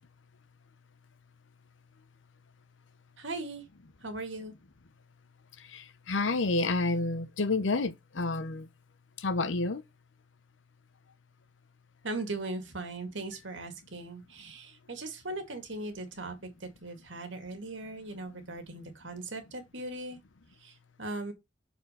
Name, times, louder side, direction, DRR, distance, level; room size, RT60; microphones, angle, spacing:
voice 1, 3.2-3.6 4.0-4.5 12.0-20.2 20.6-21.3, right 2 dB, 85° right, 2.1 m, -39 dB
voice 2, 5.6-8.7 9.2-9.8, left 3 dB, 85° left, 0.8 m, -29 dB
7.0 x 4.4 x 5.5 m
head